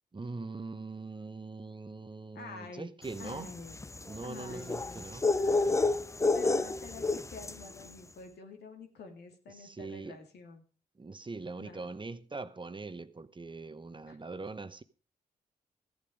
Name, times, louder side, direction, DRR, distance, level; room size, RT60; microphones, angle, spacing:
voice 1, 0.1-3.5 4.1-5.9 9.5-10.2 11.0-14.8, right 3 dB, 30° right, 1.0 m, -42 dB
voice 2, 2.3-2.9 3.2-3.8 4.2-5.1 6.3-10.6 11.6-11.9 14.1-14.2, left 4 dB, 75° left, 2.4 m, -47 dB
sound 1, 3.2-7.7, left 3 dB, 15° left, 0.6 m, -30 dB
14.0 x 8.5 x 5.3 m
supercardioid pair, 45°, 17 cm